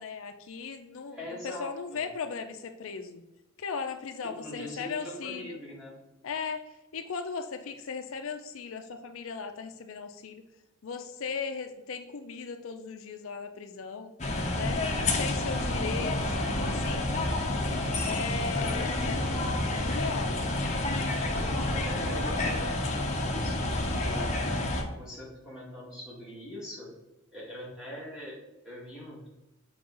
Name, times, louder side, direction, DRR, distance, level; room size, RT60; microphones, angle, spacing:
voice 1, 0.0-3.2 3.6-5.6 6.2-6.6 6.9-10.4 10.8-14.1 14.5-14.8 15.2-17.1 18.0-19.3 19.8-20.4, left 5 dB, 70° left, 7 dB, 0.5 m, -37 dB
voice 2, 1.1-2.0 4.4-6.0 21.6-24.2 24.9-26.9 27.3-28.4 28.6-29.3, equal, 5° right, -7 dB, 2.2 m, -42 dB
sound 1, 14.2-24.8, left 2 dB, 30° left, 0.8 m, -29 dB
7.0 x 4.7 x 3.8 m, 0.94 s
head